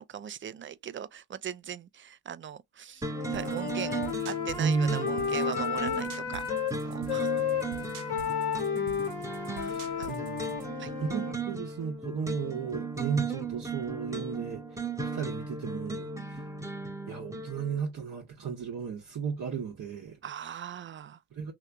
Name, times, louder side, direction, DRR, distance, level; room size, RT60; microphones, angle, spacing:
voice 1, 0.0-6.4 6.8-7.3 9.8-10.2 10.8-10.9 20.2-21.2, right 9 dB, 30° right, 0.4 m, -40 dB
sound 1, 3.0-17.8, right 3 dB, 5° right, 0.9 m, -37 dB
Wind instrument woodwind instrument, 3.1-6.7 7.1-11.4, left 7 dB, 65° left, 1.1 m, -32 dB
sound 2, 3.3-10.7, right 9 dB, 80° right, 0.6 m, -48 dB
voice 2, 4.6-5.2 7.9-8.0 9.5-10.6 11.0-16.5 17.1-20.2 21.3-21.5, right 6 dB, 45° right, 0.9 m, -34 dB
3.2 x 2.8 x 2.3 m
hypercardioid pair, 40°, 43 cm